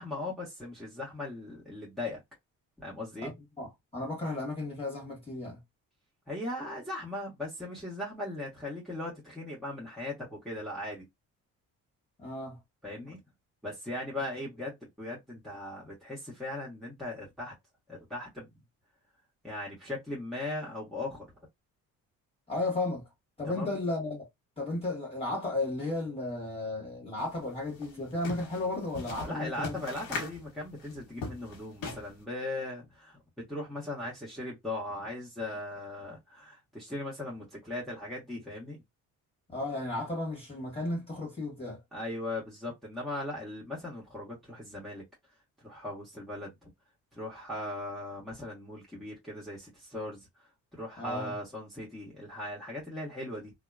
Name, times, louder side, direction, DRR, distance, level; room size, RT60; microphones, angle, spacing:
voice 1, 0.0-2.2 2.8-3.3 6.3-11.1 12.8-13.2 13.6-17.5 17.9-18.5 19.4-21.3 23.4-23.8 29.2-38.8 41.9-45.0 45.6-46.7 47.1-50.3 50.7-53.5, left 1 dB, ahead, 1.2 m, -38 dB
voice 2, 3.6-5.6 12.2-12.6 22.5-23.0 23.4-24.3 24.6-29.8 39.5-41.8 51.0-51.3, left 2 dB, 15° left, 1.6 m, -34 dB
sound 1, 27.2-27.3 27.6-32.2, left 3 dB, 85° left, 1.0 m, -39 dB
2.7 x 2.1 x 2.4 m
supercardioid pair, 75°, 35 cm